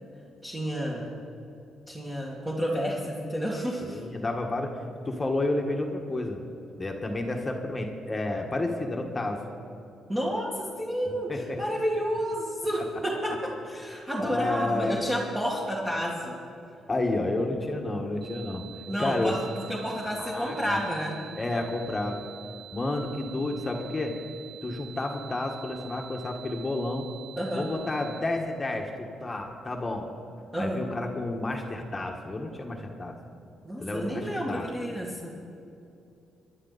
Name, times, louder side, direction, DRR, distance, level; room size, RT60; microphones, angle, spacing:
voice 1, 0.4-1.1 1.9-4.0 10.1-16.4 18.9-21.2 27.4-27.7 30.5-30.8 33.6-35.3, equal, 15° right, -4 dB, 2.2 m, -30 dB
voice 2, 3.8-6.4 6.8-9.4 11.3-11.6 14.2-15.1 16.9-18.6 19.0-19.4 20.0-20.8 21.4-22.2 22.7-24.1 24.6-27.1 27.5-30.1 30.6-33.1 33.8-34.7, left 2 dB, 25° left, 2 dB, 1.5 m, -30 dB
sound 1, 18.2-28.2, right 12 dB, 35° right, 2.3 m, -47 dB
22.5 x 11.0 x 4.1 m, 2.6 s
cardioid pair, 90°, 0 cm